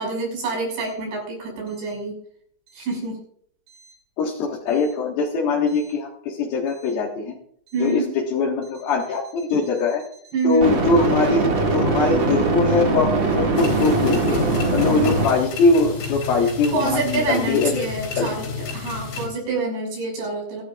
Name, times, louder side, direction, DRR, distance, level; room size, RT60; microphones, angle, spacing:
voice 1, 0.0-2.2 2.7-3.2 7.7-8.1 10.3-10.8 16.7-20.6, right 3 dB, 70° right, -1 dB, 8.5 m, -26 dB
voice 2, 4.2-7.4 7.8-10.0 10.4-11.4 11.7-14.4 14.7-17.8 18.2-18.3, left 4 dB, 60° left, -2 dB, 3.2 m, -22 dB
sound 1, 5.7-5.9 10.6-15.3, right 2 dB, 40° right, 1.9 m, -21 dB
sound 2, 13.5-19.3, left 5 dB, 85° left, 6.5 m, -32 dB
27.0 x 11.5 x 2.5 m, 0.64 s
omnidirectional pair, 5.4 m